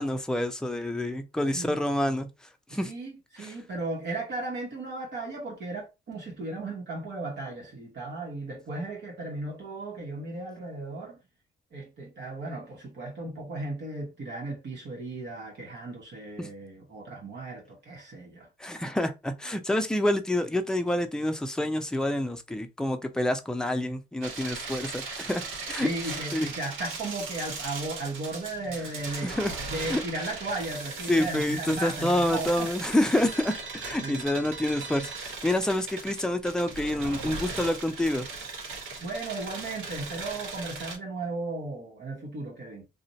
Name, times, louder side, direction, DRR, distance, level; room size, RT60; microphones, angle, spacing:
voice 1, 0.0-2.3 2.7-2.9 3.4-3.5 16.4-16.5 18.6-25.4 25.7-25.9 26.3-26.5 29.2-29.5 29.9-30.0 31.1-33.5 33.8-38.2, left 1 dB, 5° left, 0.5 m, -27 dB
voice 2, 2.7-11.2 11.7-18.5 25.8-29.4 29.6-32.7 34.0-34.5 39.0-42.9, right 2 dB, 60° right, 1.1 m, -36 dB
sound 1, 24.2-41.0, right 4 dB, 85° right, 1.0 m, -38 dB
2.5 x 2.1 x 3.9 m
cardioid pair, 90°, 20 cm